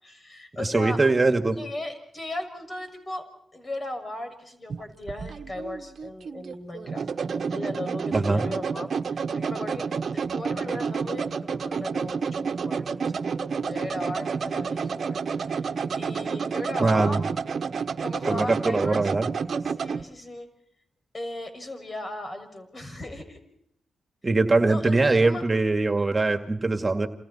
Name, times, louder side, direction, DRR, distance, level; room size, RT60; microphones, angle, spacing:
voice 1, 0.0-1.0 1.6-3.2 3.5-7.1 7.5-15.2 15.5-15.7 16.0-17.2 18.0-19.1 19.6-20.5 21.1-23.4 24.6-25.4, left 1 dB, 40° left, 8 dB, 6.5 m, -37 dB
voice 2, 0.6-1.6 8.1-8.4 16.8-17.2 18.3-19.3 24.2-27.1, right 3 dB, 30° right, 6 dB, 2.3 m, -22 dB
sound 1, 4.7-20.0, right 5 dB, 60° right, 1.2 m, -30 dB
29.0 x 27.5 x 4.5 m, 0.77 s
supercardioid pair, 45°, 0 cm